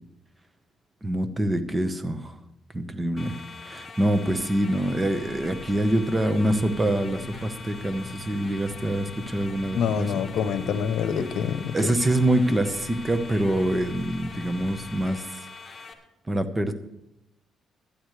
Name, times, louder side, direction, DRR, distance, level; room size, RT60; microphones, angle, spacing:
voice 1, 1.0-2.4 2.7-10.1 11.7-15.4 16.3-16.7, right 1 dB, 20° right, 10 dB, 1.1 m, -25 dB
sound 1, 3.2-15.9, left 4 dB, 30° left, 1.8 m, -43 dB
sound 2, 4.8-15.1, left 4 dB, 55° left, 1.2 m, -42 dB
voice 2, 9.7-11.7, left 7 dB, 75° left, 11 dB, 0.9 m, -26 dB
18.5 x 12.0 x 3.3 m, 0.84 s
cardioid pair, 90°, 0 cm